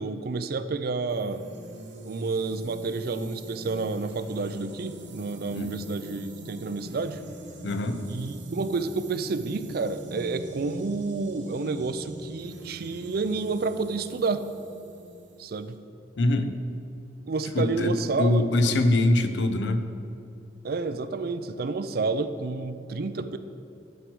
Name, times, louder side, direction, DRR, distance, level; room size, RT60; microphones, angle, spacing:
voice 1, 0.0-1.5 2.0-7.2 8.1-14.5 15.4-15.8 17.3-18.8 20.6-23.4, right 3 dB, 55° right, 11 dB, 0.4 m, -30 dB
sound 1, 1.1-15.8, right 1 dB, 85° right, 1.1 m, -42 dB
voice 2, 5.5-5.9 7.6-8.0 16.2-16.5 17.5-19.8, left 2 dB, 75° left, 8 dB, 0.7 m, -24 dB
11.5 x 4.6 x 6.1 m, 2.6 s
head